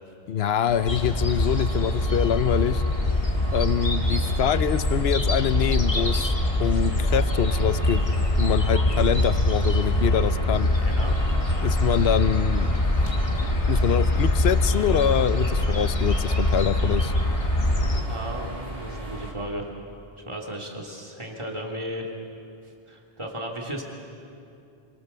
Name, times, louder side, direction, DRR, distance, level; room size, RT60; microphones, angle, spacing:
voice 1, 0.3-2.8 3.5-6.3 6.6-8.0 8.4-10.7 11.6-12.7 13.7-17.1, left 9 dB, 80° left, 14 dB, 1.0 m, -25 dB
sound 1, 0.7-19.3, right 1 dB, 45° right, 3.8 m, -36 dB
sound 2, 0.9-18.0, left 1 dB, 30° left, 1.6 m, -23 dB
voice 2, 10.7-11.1 18.1-19.7 20.2-22.1 22.9-23.8, equal, 30° right, -1 dB, 2.9 m, -35 dB
28.5 x 24.0 x 6.8 m, 2.6 s
omnidirectional pair, 1.0 m